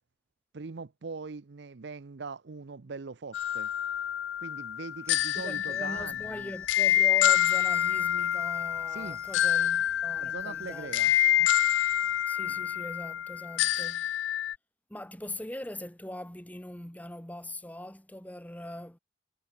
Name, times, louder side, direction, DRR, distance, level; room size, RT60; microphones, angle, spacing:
voice 1, 0.5-3.7 4.4-6.5 8.9-9.2 10.2-11.1, right 4 dB, 60° right, 0.6 m, -41 dB
sound 1, 3.3-14.5, left 11 dB, 70° left, 0.3 m, -27 dB
sound 2, 5.0-12.2, right 2 dB, 15° right, 1.8 m, -57 dB
voice 2, 5.3-10.9 11.4-11.5 12.3-14.1 14.9-19.0, left 1 dB, 10° left, 1.5 m, -41 dB
head